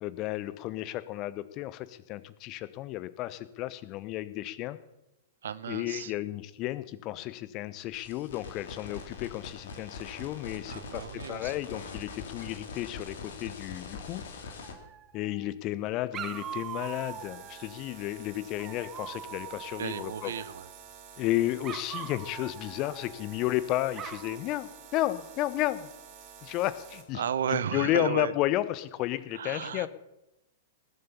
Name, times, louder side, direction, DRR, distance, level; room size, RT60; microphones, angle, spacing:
voice 1, 0.0-4.8 5.7-14.5 15.1-20.3 21.2-25.9 26.4-27.2 27.5-29.9, left 15 dB, 40° left, 16 dB, 0.9 m, -33 dB
voice 2, 5.4-6.1 10.7-11.5 19.8-20.7 27.1-28.3 29.3-29.9, right 8 dB, 70° right, 16 dB, 0.8 m, -34 dB
sound 1, 7.9-14.7, left 4 dB, 65° left, 2.8 m, -43 dB
Dog, 14.6-15.5 16.1-17.8 18.6-20.7 21.6-23.5 24.0-24.4, right 10 dB, 25° right, 1.0 m, -42 dB
sound 2, 16.1-27.0, right 7 dB, 45° right, 3.6 m, -50 dB
19.5 x 7.9 x 7.0 m, 0.89 s
figure-of-eight pair, 105°, 0 cm